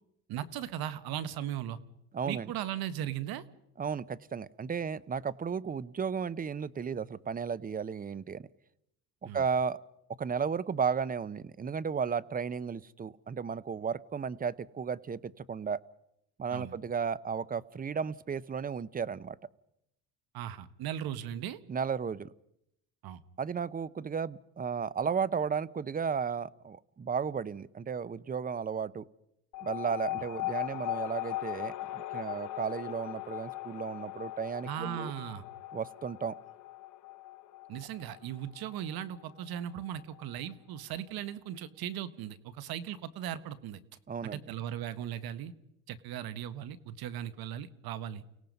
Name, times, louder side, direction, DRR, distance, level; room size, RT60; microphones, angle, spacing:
voice 1, 0.3-1.8 2.2-3.4 9.2-9.4 16.5-16.8 20.3-21.6 23.0-23.2 34.7-35.4 37.7-43.8 44.2-45.5 45.9-48.2, right 10 dB, 65° right, 15 dB, 1.5 m, -38 dB
voice 2, 2.1-2.5 3.8-8.5 9.2-9.8 10.2-15.8 16.4-19.4 21.7-22.3 23.4-29.0 29.6-35.1 35.7-36.3 44.1-44.4, right 6 dB, 20° right, 20 dB, 0.7 m, -34 dB
sound 1, 29.5-40.5, left 16 dB, 50° left, 0.9 m, -39 dB
29.5 x 17.5 x 5.4 m, 0.79 s
supercardioid pair, 95°, 38 cm